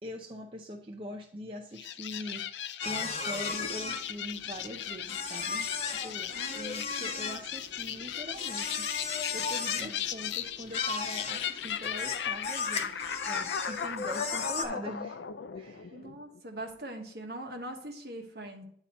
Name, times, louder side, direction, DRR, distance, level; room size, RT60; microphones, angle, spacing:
voice 1, 0.0-15.2 15.5-16.0, equal, 30° right, 1 dB, 0.6 m, -43 dB
sound 1, 1.7-16.4, left 9 dB, 80° left, 0.4 m, -37 dB
sound 2, 2.8-14.6, left 5 dB, 35° left, 0.8 m, -36 dB
voice 2, 6.3-7.4 9.8-10.0 15.9-18.6, right 1 dB, 60° right, 2 dB, 1.3 m, -42 dB
9.6 x 4.2 x 4.2 m, 0.65 s
head